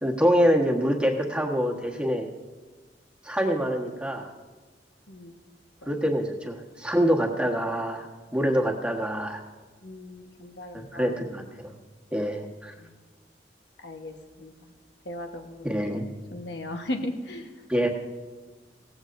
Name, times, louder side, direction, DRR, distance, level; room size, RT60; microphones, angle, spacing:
voice 1, 0.0-2.3 3.2-4.3 5.9-8.1 8.3-9.4 10.7-11.7 12.1-12.7 15.6-16.0 17.7-17.9, equal, 5° right, 1 dB, 1.3 m, -25 dB
voice 2, 9.8-11.1 13.8-14.1 14.4-14.5 15.1-15.7 16.3-17.5, left 1 dB, 70° left, 4 dB, 1.3 m, -36 dB
17.0 x 15.5 x 2.6 m, 1.3 s
head